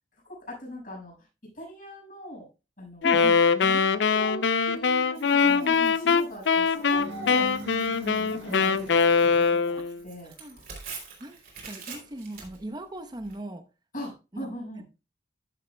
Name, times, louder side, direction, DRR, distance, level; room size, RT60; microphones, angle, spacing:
voice 1, 0.5-1.1 1.5-2.5 2.8-3.2 3.6-5.7 6.0-7.5 7.9-8.9 9.2-10.3 13.9-14.8, equal, 50° left, 6.0 m, -40 dB
Wind instrument woodwind instrument, 3.0-10.0, left 5 dB, 80° left, 0.5 m, -22 dB
voice 2, 3.0-3.4 5.2-6.0 7.9-8.1 9.8-9.9 10.4-10.6 11.2-11.4 11.6-13.6 14.3-14.5, right 1 dB, 25° right, 0.9 m, -38 dB
Tearing, 5.1-13.4, right 5 dB, 55° right, 3.2 m, -47 dB
sound 1, 6.7-9.6, right 2 dB, 80° right, 1.7 m, -41 dB
13.0 x 7.4 x 2.2 m
head